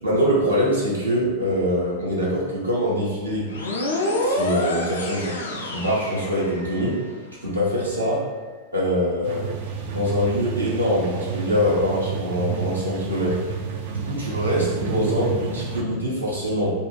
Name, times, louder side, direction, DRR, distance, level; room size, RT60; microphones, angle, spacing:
voice 1, 0.0-3.5 4.2-6.9 7.4-8.2 8.7-9.5 9.9-13.3 13.9-16.7, equal, 80° right, -7 dB, 0.9 m, -24 dB
sound 1, 3.5-7.0, left 1 dB, 70° left, 0.4 m, -27 dB
sound 2, 9.2-15.8, right 6 dB, 50° right, 0.3 m, -30 dB
2.6 x 2.2 x 3.1 m, 1.4 s
figure-of-eight pair, 90°, 0 cm